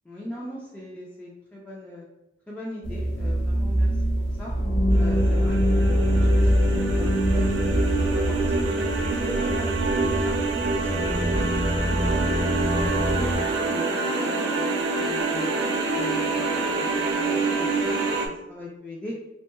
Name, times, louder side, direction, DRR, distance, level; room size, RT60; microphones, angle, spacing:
voice 1, 0.0-2.1 2.5-4.5 4.9-10.4 10.7-13.3 13.6-15.5 15.9-19.2, left 1 dB, 5° left, -5 dB, 0.3 m, -39 dB
sound 1, 2.8-13.4, equal, 80° left, 0.8 m, -24 dB
sound 2, 4.9-18.3, right 3 dB, 80° right, 0.5 m, -26 dB
3.5 x 2.2 x 2.9 m, 0.94 s
head